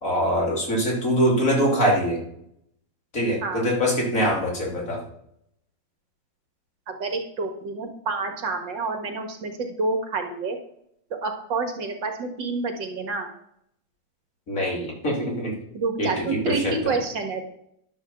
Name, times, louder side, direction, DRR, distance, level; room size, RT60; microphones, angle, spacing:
voice 1, 0.0-2.2 3.1-5.0 14.5-15.6 16.0-16.8, equal, 45° left, -1 dB, 3.2 m, -23 dB
voice 2, 6.9-10.6 11.1-13.3 15.7-17.4, right 3 dB, 70° right, 4 dB, 2.1 m, -28 dB
11.0 x 5.6 x 7.0 m, 0.74 s
omnidirectional pair, 2.1 m